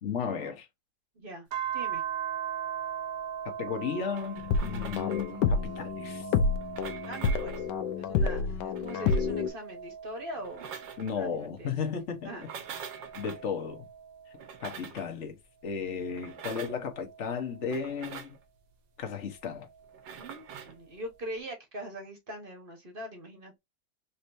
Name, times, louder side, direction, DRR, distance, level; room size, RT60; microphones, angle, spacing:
voice 1, 0.0-0.7 3.4-6.3 11.0-12.3 13.1-13.9 14.6-15.4 15.6-18.4 19.0-19.7, left 6 dB, 45° left, 1.1 m, -34 dB
voice 2, 1.1-1.5 1.7-2.0 7.0-7.6 8.0-11.7 12.2-13.1 20.2-23.5, right 1 dB, 35° right, 1.1 m, -42 dB
sound 1, 1.5-8.2 8.7-11.6 12.2-14.9 15.7-18.1 19.5-20.6, right 9 dB, 55° right, 1.2 m, -41 dB
sound 2, 4.1-5.4 6.5-7.7 8.6-9.3 10.3-11.2 12.3-13.4 14.3-15.1 16.1-16.8 17.7-18.4 19.9-20.8, right 7 dB, 75° right, 1.5 m, -44 dB
sound 3, 4.4-9.5, left 5 dB, 70° left, 1.2 m, -29 dB
4.3 x 3.1 x 2.6 m
omnidirectional pair, 2.1 m